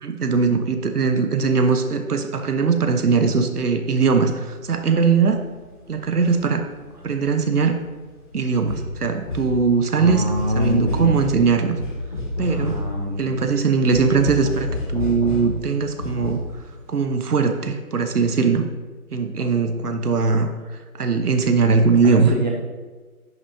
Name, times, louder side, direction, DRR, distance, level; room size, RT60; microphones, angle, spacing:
voice 1, 0.0-5.4 5.9-6.6 7.0-7.8 8.3-11.8 12.4-12.8 13.2-16.4 16.9-18.6 19.1-20.5 21.0-22.3, right 5 dB, 80° right, 7 dB, 1.1 m, -20 dB
sound 1, 4.6-4.7 4.9-5.0 5.6-7.9 8.4-16.5 16.7-16.8, left 1 dB, 35° left, 1.7 m, -29 dB
voice 2, 9.9-11.1 12.5-13.5 22.0-22.5, equal, 30° right, -1 dB, 0.6 m, -24 dB
10.5 x 6.0 x 2.8 m, 1.4 s
hypercardioid pair, 170°, 45 cm